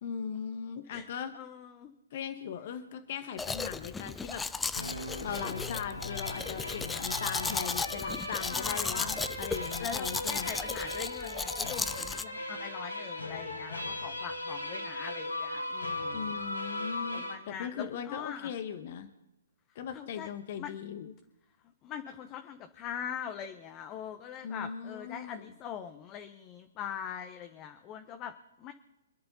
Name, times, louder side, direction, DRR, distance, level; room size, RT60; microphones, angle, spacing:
voice 1, 0.0-1.3 2.1-4.5 5.2-10.5 16.1-19.1 19.7-21.1 24.4-25.5, left 7 dB, 45° left, 8 dB, 1.2 m, -39 dB
voice 2, 1.3-1.9 8.5-9.2 9.8-16.4 17.1-18.5 19.9-20.3 20.6-20.7 21.8-28.7, left 8 dB, 25° left, 6 dB, 1.0 m, -42 dB
Domestic sounds home sounds, 3.4-12.2, left 4 dB, 10° left, 0.4 m, -35 dB
sound 1, 4.7-17.3, left 2 dB, 90° left, 4.1 m, -38 dB
26.5 x 10.0 x 4.2 m, 0.93 s
figure-of-eight pair, 125°, 0 cm